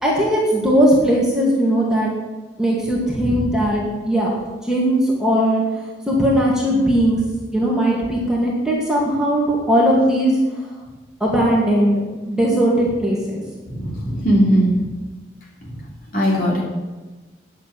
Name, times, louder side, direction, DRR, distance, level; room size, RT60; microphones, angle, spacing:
voice 1, 0.0-2.1 2.6-5.6 6.1-7.2 7.5-10.4 11.2-13.4, equal, 5° right, -5 dB, 2.3 m, -18 dB
voice 2, 13.7-14.7 16.1-16.6, equal, 50° left, -4 dB, 3.6 m, -18 dB
9.6 x 7.4 x 8.6 m, 1.2 s
head